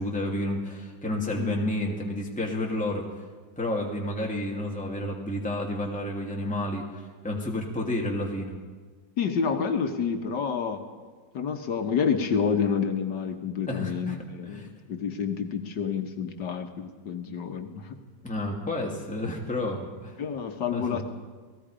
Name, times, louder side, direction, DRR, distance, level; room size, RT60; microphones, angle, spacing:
voice 1, 0.0-3.1 3.6-8.5 13.7-14.2 14.5-14.7 18.2-20.2 20.7-21.0, left 1 dB, 5° left, -1 dB, 2.5 m, -30 dB
voice 2, 9.2-10.8 11.3-18.0 20.2-21.0, left 6 dB, 70° left, 5 dB, 1.9 m, -29 dB
29.0 x 18.5 x 5.1 m, 1.4 s
omnidirectional pair, 2.0 m